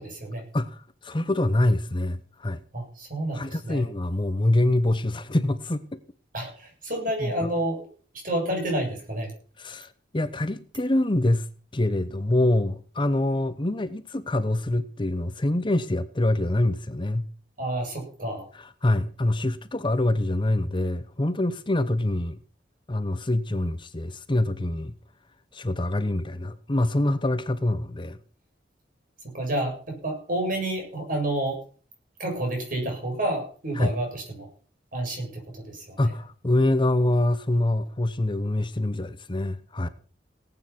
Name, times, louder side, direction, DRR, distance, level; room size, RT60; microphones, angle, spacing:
voice 1, 0.0-0.4 2.7-3.8 6.3-7.9 8.1-9.3 17.6-18.5 29.3-31.6 32.2-34.5 34.9-36.0, right 1 dB, 50° right, 1 dB, 7.8 m, -29 dB
voice 2, 0.5-2.6 3.3-6.0 7.2-7.5 9.6-11.5 11.7-17.3 18.5-22.4 22.9-24.9 25.5-28.2 33.7-34.0 36.0-39.9, left 1 dB, 30° left, 12 dB, 0.8 m, -25 dB
18.0 x 9.0 x 6.1 m, 0.41 s
head